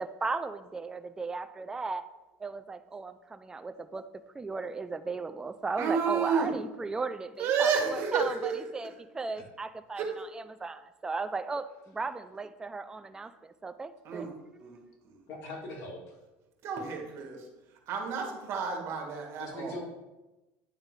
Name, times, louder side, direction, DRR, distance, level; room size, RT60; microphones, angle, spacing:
voice 1, 0.0-2.0 2.4-4.0 4.3-14.3 14.6-15.0, right 4 dB, 10° right, 10 dB, 0.3 m, -36 dB
voice 2, 5.8-6.5 7.4-8.5 9.9-10.1 14.0-14.3 14.6-14.8 15.0-15.2 16.6-17.4 17.9-19.7, right 6 dB, 50° right, 2 dB, 1.8 m, -30 dB
voice 3, 15.3-16.2 19.4-19.8, left 2 dB, 55° left, -1 dB, 2.2 m, -40 dB
9.0 x 3.7 x 4.8 m, 1.0 s
cardioid pair, 130°, 6 cm